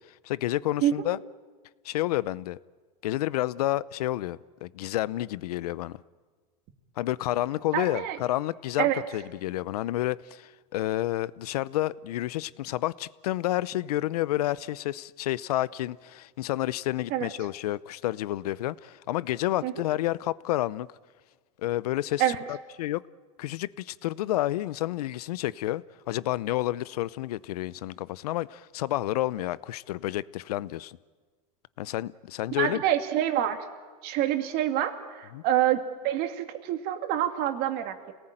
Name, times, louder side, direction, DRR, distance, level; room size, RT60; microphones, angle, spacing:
voice 1, 0.2-1.2 1.8-2.6 3.0-6.0 7.0-20.9 21.6-23.0 23.4-31.0 31.8-32.8 35.3-35.4, left 15 dB, 85° left, 20 dB, 0.7 m, -30 dB
voice 2, 7.7-8.2 8.8-9.0 17.1-17.3 19.6-19.7 22.2-22.4 32.6-33.6 34.0-38.1, right 11 dB, 55° right, 7 dB, 2.4 m, -26 dB
26.5 x 18.5 x 9.0 m, 1.4 s
supercardioid pair, 120°, 19 cm